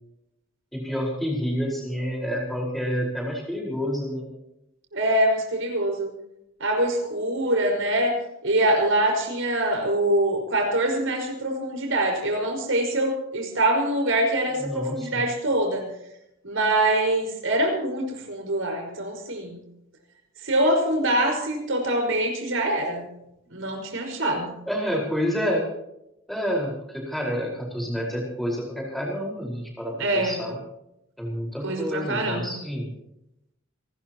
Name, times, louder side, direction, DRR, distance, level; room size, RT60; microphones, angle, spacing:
voice 1, 0.7-4.3 14.6-15.3 24.7-25.6 26.3-30.6 31.2-32.9, equal, ahead, -2 dB, 4.8 m, -28 dB
voice 2, 4.9-6.1 6.6-8.2 8.4-15.9 16.4-19.6 20.4-23.0 23.5-24.5 30.0-30.4 31.6-32.5, right 1 dB, 70° right, 2 dB, 5.3 m, -24 dB
28.5 x 13.0 x 3.0 m, 0.84 s
head